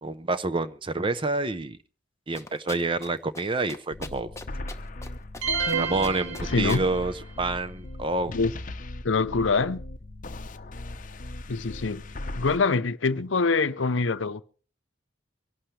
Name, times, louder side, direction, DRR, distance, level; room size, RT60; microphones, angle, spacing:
voice 1, 0.0-1.8 2.3-4.3 5.8-8.3, right 2 dB, 25° right, 0.8 m, -28 dB
sound 1, 2.3-3.1 3.3-3.4 3.7-5.1 5.3-5.8 6.0-6.8, left 3 dB, 15° left, 1.1 m, -40 dB
sound 2, 3.9-12.6, left 2 dB, 40° left, 0.8 m, -38 dB
sound 3, 5.4-7.2, right 5 dB, 90° right, 2.6 m, -30 dB
voice 2, 6.4-6.9 8.3-8.5 9.0-9.8 11.5-12.1 12.4-14.4, left 4 dB, 75° left, 0.7 m, -24 dB
24.5 x 11.5 x 3.3 m
head